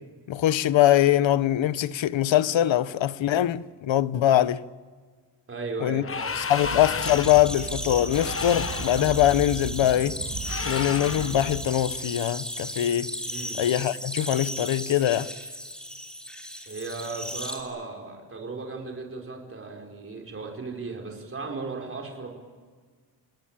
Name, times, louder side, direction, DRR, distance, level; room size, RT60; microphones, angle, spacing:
voice 1, 0.3-4.6 5.8-6.0 6.5-10.2 10.6-13.1 13.6-15.3, left 12 dB, 85° left, 0.9 m, -22 dB
voice 2, 5.5-6.3 13.2-13.6 16.7-22.3, right 3 dB, 30° right, 4.7 m, -36 dB
sound 1, 6.0-7.5 8.1-9.1 10.4-11.4, left 5 dB, 30° left, 1.1 m, -32 dB
sound 2, 6.6-11.7, right 5 dB, 55° right, 1.8 m, -37 dB
sound 3, 7.0-17.6, equal, ahead, 3.4 m, -36 dB
28.5 x 20.0 x 8.9 m
wide cardioid pair, 170°, 44 cm